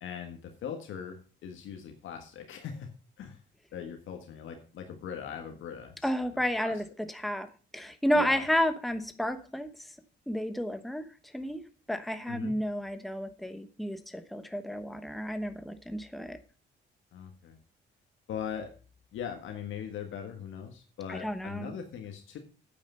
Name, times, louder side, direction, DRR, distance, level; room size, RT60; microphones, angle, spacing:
voice 1, 0.0-2.9 3.2-3.4 3.7-6.7 8.1-8.4 12.3-12.6 17.1-17.6 18.3-18.7 19.1-22.4, left 8 dB, 75° left, 5 dB, 1.6 m, -40 dB
voice 2, 6.0-7.5 7.7-9.7 10.3-11.0 11.3-16.4 21.1-21.7, equal, ahead, 9 dB, 1.1 m, -31 dB
8.9 x 8.7 x 5.6 m, 0.36 s
cardioid pair, 90°, 20 cm